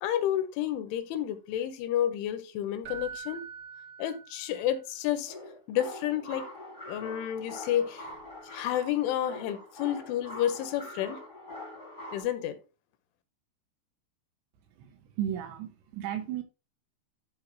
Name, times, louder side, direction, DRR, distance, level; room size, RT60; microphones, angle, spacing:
voice 1, 0.0-3.4 4.0-5.3 5.7-6.5 6.9-8.1 8.5-11.2 12.1-12.6, left 11 dB, 85° left, 3.4 m, -30 dB
Keyboard (musical), 2.8-4.8 8.0-8.2, right 7 dB, 45° right, 1.3 m, -44 dB
sound 1, 5.2-12.2, left 1 dB, 35° left, 0.8 m, -44 dB
voice 2, 14.8-16.4, right 10 dB, 80° right, 2.7 m, -35 dB
13.0 x 4.6 x 3.0 m
omnidirectional pair, 5.5 m